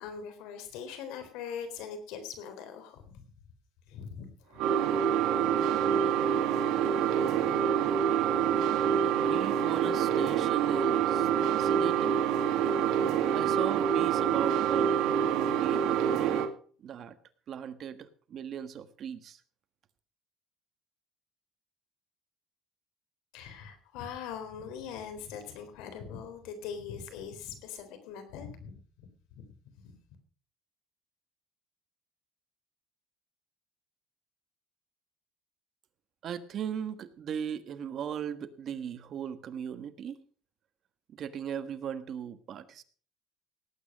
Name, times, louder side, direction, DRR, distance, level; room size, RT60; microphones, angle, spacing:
voice 1, 0.0-3.2 3.9-4.7 23.3-28.8 29.3-29.4 29.8-29.9, left 7 dB, 85° left, 9 dB, 3.7 m, -42 dB
sound 1, 4.6-16.5, right 8 dB, 70° right, 1.9 m, -26 dB
voice 2, 9.2-12.2 13.3-16.4 16.8-17.2 17.5-19.4 36.2-40.2 41.1-42.8, right 8 dB, 45° right, 11 dB, 1.4 m, -38 dB
18.0 x 8.9 x 5.2 m, 0.43 s
cardioid pair, 130°, 0 cm